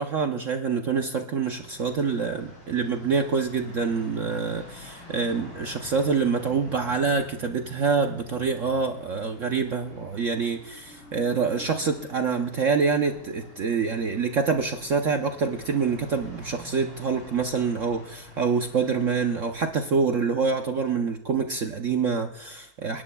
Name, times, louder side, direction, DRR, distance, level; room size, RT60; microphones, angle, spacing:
voice 1, 0.0-23.0, right 5 dB, 60° right, 5 dB, 0.8 m, -26 dB
sound 1, 1.4-19.7, left 1 dB, 80° left, 5.4 m, -46 dB
29.0 x 11.0 x 2.3 m, 0.78 s
omnidirectional pair, 2.1 m